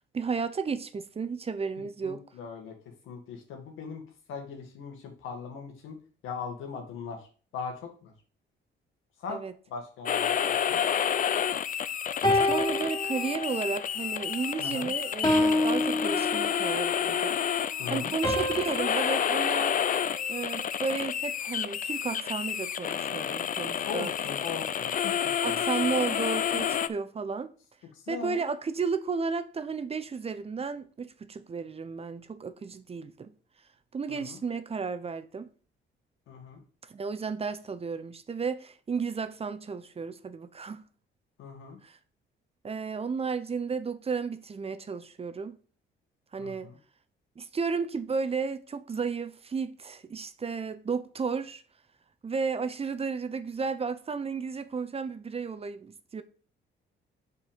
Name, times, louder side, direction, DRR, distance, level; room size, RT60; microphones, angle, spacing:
voice 1, 0.1-2.2 9.3-9.5 12.4-17.4 17.9-19.8 20.3-24.1 25.4-27.5 28.1-33.3 33.9-35.5 36.9-40.9 41.8-42.0 42.6-45.6 46.3-46.7 47.4-51.6 52.2-56.2, right 5 dB, 30° right, 0.7 m, -33 dB
voice 2, 2.0-2.7 3.0-4.0 4.3-6.0 6.2-7.2 7.5-8.1 9.2-9.4 9.7-10.8 14.6-14.9 17.8-18.1 23.8-25.6 27.9-28.4 34.1-34.4 36.3-36.6 41.4-41.8 46.4-46.8, left 5 dB, 90° left, 1.9 m, -39 dB
sound 1, 10.1-26.9, left 9 dB, 45° left, 0.5 m, -29 dB
sound 2, 12.2-13.8 14.2-14.6 15.2-16.9 18.2-20.6, left 1 dB, 20° left, 2.5 m, -29 dB
6.0 x 4.6 x 5.1 m
cardioid pair, 90°, 20 cm